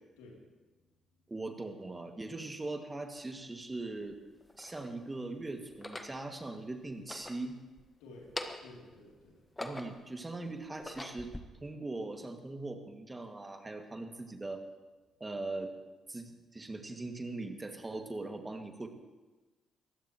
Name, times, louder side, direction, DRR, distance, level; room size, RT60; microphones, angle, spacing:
voice 1, 0.2-0.7 1.2-1.3 8.0-9.6, left 2 dB, 80° left, -2 dB, 3.1 m, -54 dB
voice 2, 1.3-4.2 4.6-7.6 9.6-11.3 11.6-14.6 15.2-15.7 16.1-18.9, right 2 dB, 25° right, 4 dB, 2.2 m, -40 dB
sound 1, 3.2-3.3 4.1-4.9 5.7-6.2 6.9-7.9 8.2-8.8 9.3-10.1 10.6-11.4, left 1 dB, 15° left, 1.6 m, -43 dB
21.5 x 15.5 x 3.1 m, 1.2 s
hypercardioid pair, 45°, 0 cm